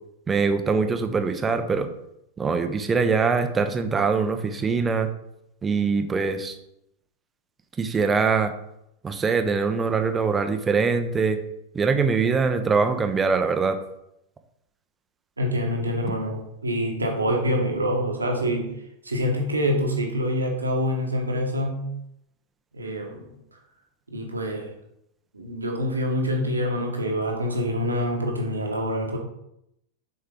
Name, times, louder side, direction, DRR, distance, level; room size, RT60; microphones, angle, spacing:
voice 1, 0.3-1.9 2.4-5.1 5.6-6.6 7.8-8.5 9.0-11.4 11.7-13.8, right 5 dB, 15° right, 7 dB, 0.7 m, -23 dB
voice 2, 15.4-18.7 19.0-21.8 22.7-23.3 24.1-24.7 25.3-29.2, equal, 80° right, 2 dB, 1.3 m, -26 dB
6.6 x 4.5 x 3.7 m, 0.79 s
figure-of-eight pair, 90°, 0 cm